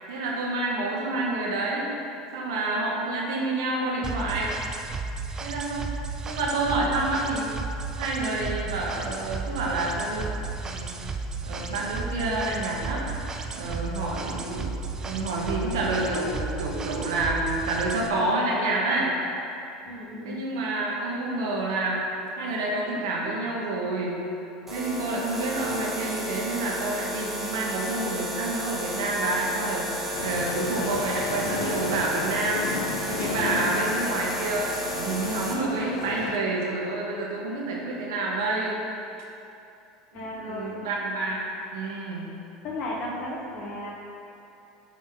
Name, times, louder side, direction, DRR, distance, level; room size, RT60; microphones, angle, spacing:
voice 1, 0.1-1.9 2.3-4.5 5.4-5.8 6.2-7.5 8.0-11.0 11.4-13.1 13.5-14.7 15.0-19.1 20.2-22.0 22.4-24.2 24.7-32.6 33.1-34.7 34.9-38.8 40.4-41.4 41.7-42.3, right 2 dB, 80° right, -3 dB, 1.2 m, -28 dB
sound 1, 4.0-18.1, right 4 dB, 25° right, 0.5 m, -34 dB
voice 2, 19.9-20.4 40.1-40.7 42.6-43.9, left 1 dB, 55° left, -3 dB, 1.1 m, -34 dB
sound 2, 24.7-35.5, right 1 dB, 10° right, 1.3 m, -33 dB
sound 3, 30.1-36.4, left 4 dB, 80° left, 0.5 m, -34 dB
8.5 x 3.1 x 3.9 m, 2.8 s
hypercardioid pair, 85°, 2 cm